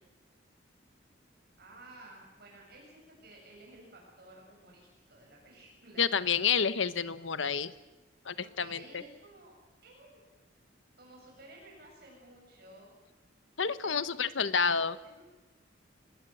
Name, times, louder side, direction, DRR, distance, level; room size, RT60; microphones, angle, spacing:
voice 1, 1.6-6.0 8.4-9.5 9.8-10.2 11.0-12.9 13.8-14.0 15.0-15.2, right 2 dB, 55° right, -2 dB, 7.7 m, -54 dB
voice 2, 6.0-7.7 8.2-9.0 13.6-15.0, left 6 dB, 90° left, 14 dB, 1.1 m, -29 dB
26.0 x 20.0 x 7.8 m, 1.1 s
head